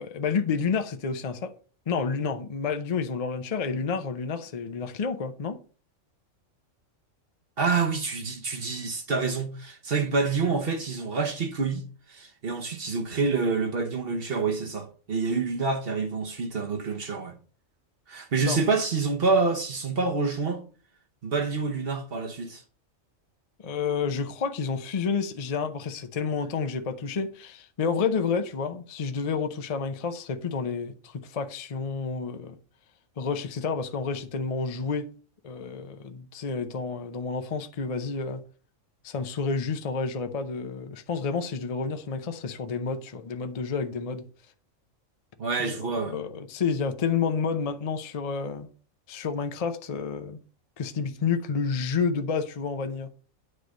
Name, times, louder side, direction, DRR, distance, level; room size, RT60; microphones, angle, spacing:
voice 1, 0.0-1.5 1.9-5.6 18.5-18.6 23.6-32.6 33.2-35.1 35.4-38.4 39.0-44.2 45.6-48.7 49.1-50.4 50.8-53.1, left 5 dB, 40° left, 0.5 m, -30 dB
voice 2, 7.6-11.8 12.1-17.3 18.1-20.6 21.2-22.6 45.4-46.2, right 4 dB, 50° right, 1.2 m, -27 dB
9.6 x 3.2 x 5.1 m
omnidirectional pair, 1.4 m